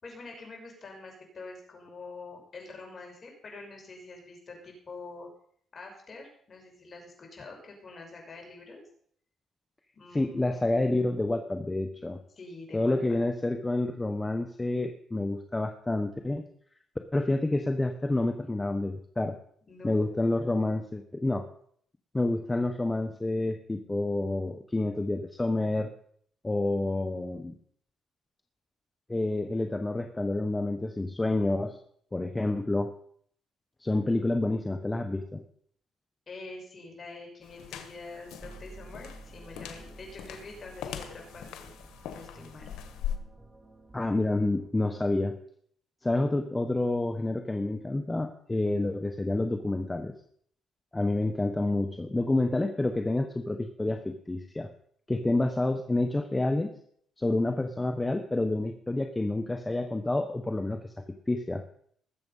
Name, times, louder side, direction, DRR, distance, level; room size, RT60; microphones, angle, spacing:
voice 1, 0.0-5.3 5.7-8.8 9.9-10.6 12.4-13.2 19.7-20.1 36.3-41.7 42.0-42.7, left 3 dB, 40° left, 1 dB, 5.7 m, -46 dB
voice 2, 10.1-12.2 12.7-16.4 17.1-19.3 19.8-21.5 22.1-25.9 26.4-27.6 29.1-31.8 32.1-32.9 33.8-35.4 43.9-45.3 46.0-50.1 50.9-54.7 55.1-56.7 57.2-60.9 61.3-61.6, left 2 dB, 15° left, 6 dB, 1.1 m, -28 dB
sound 1, 37.4-43.2, left 10 dB, 90° left, 1.5 m, -41 dB
sound 2, 38.4-44.7, right 2 dB, 15° right, 2.7 m, -51 dB
20.0 x 7.7 x 5.6 m, 0.63 s
cardioid pair, 90°, 0 cm